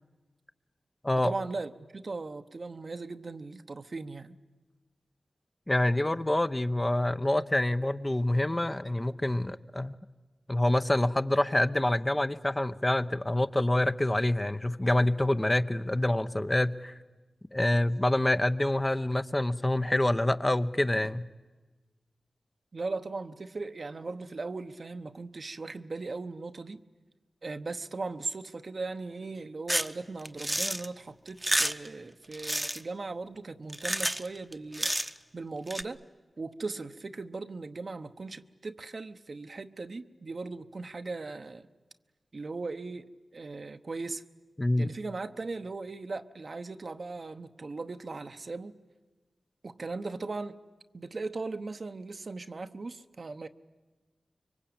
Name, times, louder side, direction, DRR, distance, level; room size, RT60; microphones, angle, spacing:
voice 1, 1.2-4.4 22.7-26.8 27.4-34.9 35.3-36.0 36.4-41.7 42.3-44.2 44.8-48.7 49.6-50.5 50.9-53.5, right 3 dB, 60° right, 1.0 m, -38 dB
voice 2, 5.7-9.9 10.5-16.9 17.5-21.3 44.6-44.9, left 1 dB, 25° left, 0.8 m, -26 dB
sound 1, 29.7-29.9 30.3-30.9 31.3-31.9 32.3-32.8 33.7-34.3 34.5-35.2 35.7-35.8, right 1 dB, 10° right, 1.0 m, -29 dB
25.0 x 23.0 x 8.8 m
cardioid pair, 55°, 0 cm